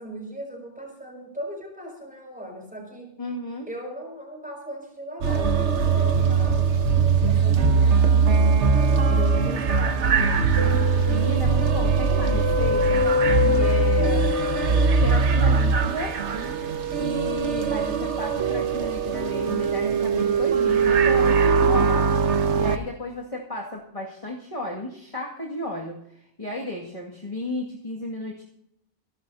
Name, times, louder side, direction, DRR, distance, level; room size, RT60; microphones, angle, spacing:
voice 1, 0.0-3.1 3.7-8.6 9.0-10.5, equal, 5° right, -2 dB, 6.0 m, -38 dB
voice 2, 3.2-3.7 9.1-9.6 11.1-13.0 13.3-14.3 15.0-16.2 17.0-22.1 22.5-28.4, left 1 dB, 30° left, -3 dB, 2.3 m, -33 dB
sound 1, 5.2-22.8, right 4 dB, 90° right, 1.4 m, -21 dB
27.5 x 12.0 x 2.8 m, 0.75 s
omnidirectional pair, 1.1 m